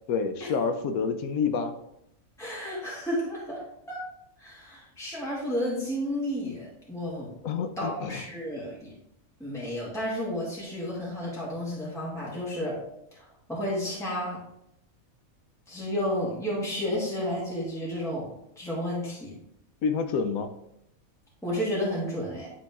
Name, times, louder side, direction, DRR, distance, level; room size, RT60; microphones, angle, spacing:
voice 1, 0.1-1.7 7.4-8.2 19.8-20.5, left 5 dB, 80° left, 8 dB, 1.1 m, -28 dB
voice 2, 2.4-3.6 3.9-4.0 4.4-7.3 7.8-8.9 9.4-12.7 13.1-14.4 15.7-18.3 18.6-19.3 21.4-22.5, equal, ahead, -6 dB, 2.1 m, -32 dB
10.5 x 4.0 x 3.5 m, 0.78 s
omnidirectional pair, 1.5 m